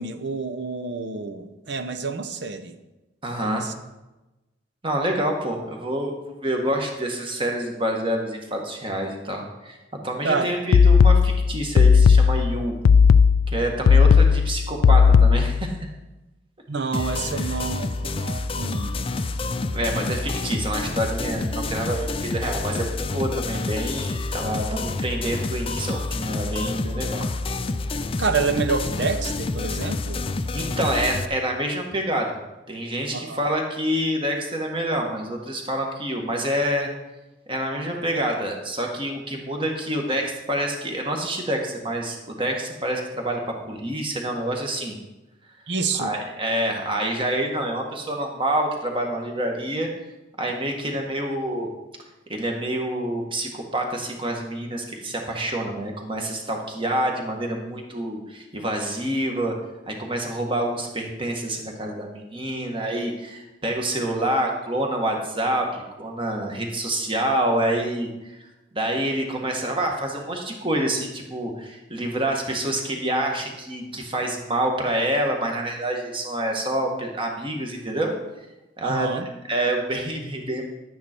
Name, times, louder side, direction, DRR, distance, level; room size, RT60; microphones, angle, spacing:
voice 1, 0.0-2.7 3.4-3.7 10.2-10.5 16.7-19.0 28.2-30.2 33.1-33.5 45.7-46.2 78.8-79.3, right 4 dB, 60° right, 8 dB, 0.9 m, -28 dB
voice 2, 3.2-3.7 4.8-9.8 10.0-12.8 13.5-15.7 17.3-17.6 19.7-27.3 30.5-32.4 32.7-36.9 37.5-43.4 43.7-45.0 45.9-49.9 50.4-51.7 52.3-59.5 59.9-68.3 68.7-78.1 78.8-79.1 79.5-80.6, right 1 dB, 25° right, 2 dB, 1.6 m, -27 dB
sound 1, 10.7-15.7, left 6 dB, 85° left, 0.3 m, -15 dB
sound 2, 16.9-31.2, left 3 dB, 30° left, 0.5 m, -28 dB
11.5 x 9.2 x 4.5 m, 1.0 s
head